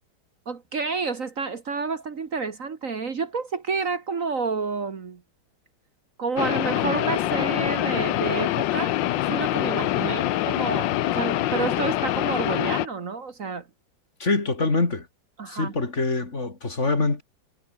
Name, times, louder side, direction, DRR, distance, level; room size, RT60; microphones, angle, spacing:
voice 1, 0.5-5.2 6.2-13.7 15.4-15.7, right 4 dB, 50° right, 1.8 m, -30 dB
sound 1, 6.4-12.9, left 14 dB, 80° left, 1.4 m, -25 dB
voice 2, 14.2-15.1 15.5-17.2, left 3 dB, 40° left, 3.2 m, -24 dB
omnidirectional pair, 2.0 m